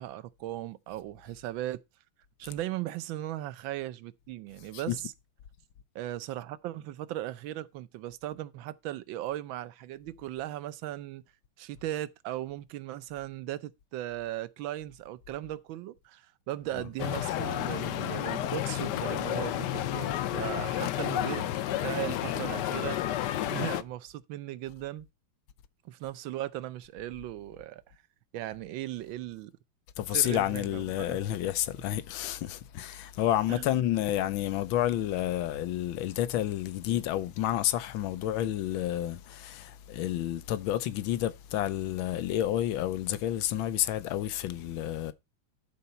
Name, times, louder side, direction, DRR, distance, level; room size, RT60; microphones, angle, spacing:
voice 1, 0.0-1.8 2.4-5.1 5.9-11.2 11.6-25.1 25.8-27.9 28.3-29.5 30.1-31.2 33.5-33.7, right 14 dB, 80° right, 1.5 m, -37 dB
sound 1, 17.0-23.8, left 12 dB, 70° left, 1.2 m, -31 dB
voice 2, 30.0-45.1, left 12 dB, 85° left, 1.5 m, -30 dB
12.5 x 4.1 x 5.7 m
omnidirectional pair, 2.2 m